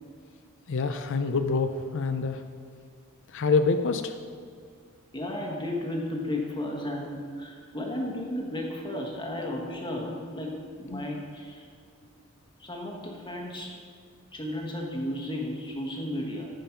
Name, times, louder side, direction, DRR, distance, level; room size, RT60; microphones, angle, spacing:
voice 1, 0.7-2.4 3.3-4.1 10.9-11.0, left 4 dB, 60° left, 8 dB, 0.5 m, -26 dB
voice 2, 5.1-10.5 10.8-11.7 12.6-13.8 14.3-16.5, left 1 dB, 20° left, 0 dB, 1.2 m, -34 dB
14.5 x 5.3 x 5.7 m, 2.1 s
head